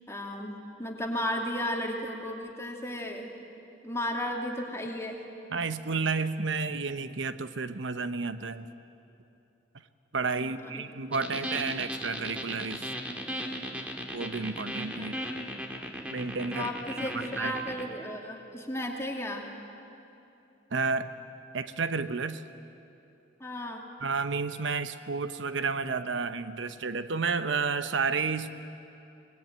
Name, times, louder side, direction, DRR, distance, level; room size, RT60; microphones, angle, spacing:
voice 1, 0.1-3.3 3.8-5.2 10.4-10.8 14.9-15.4 16.5-19.5 23.4-23.8, left 1 dB, 15° left, 1 dB, 2.5 m, -34 dB
voice 2, 5.5-8.7 10.1-12.9 14.1-15.2 16.1-17.5 20.7-21.1 21.5-22.4 24.0-28.5, right 4 dB, 80° right, 11 dB, 0.9 m, -31 dB
sound 1, 11.1-17.8, equal, 5° right, 2.1 m, -36 dB
24.0 x 20.0 x 9.2 m, 2.8 s
head